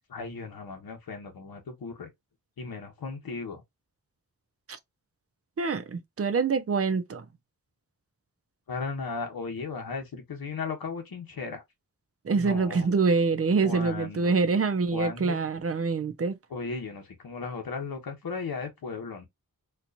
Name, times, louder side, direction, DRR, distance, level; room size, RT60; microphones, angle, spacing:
voice 1, 0.1-2.1 2.6-3.6 8.7-11.6 12.4-12.9 13.6-14.3 14.9-15.4 16.5-19.3, left 4 dB, 80° left, 1.1 m, -36 dB
voice 2, 5.6-7.2 12.2-16.4, right 4 dB, 40° right, 0.6 m, -25 dB
4.4 x 2.4 x 2.6 m
wide cardioid pair, 100°, 36 cm